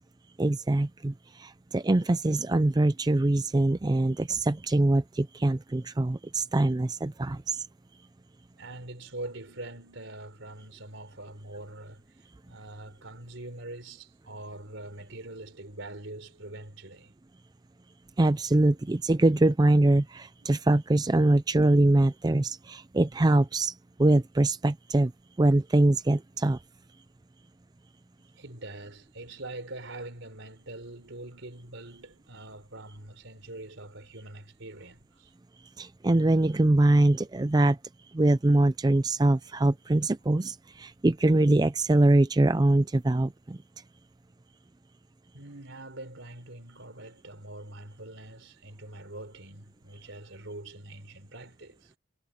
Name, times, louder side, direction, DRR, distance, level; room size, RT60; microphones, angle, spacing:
voice 1, 0.4-7.7 18.2-25.1 25.4-26.6 35.8-37.8 38.1-43.6, right 2 dB, 20° right, 0.4 m, -23 dB
voice 2, 8.6-17.1 20.4-20.5 28.4-35.3 45.3-52.0, right 2 dB, 70° right, 4.1 m, -43 dB
head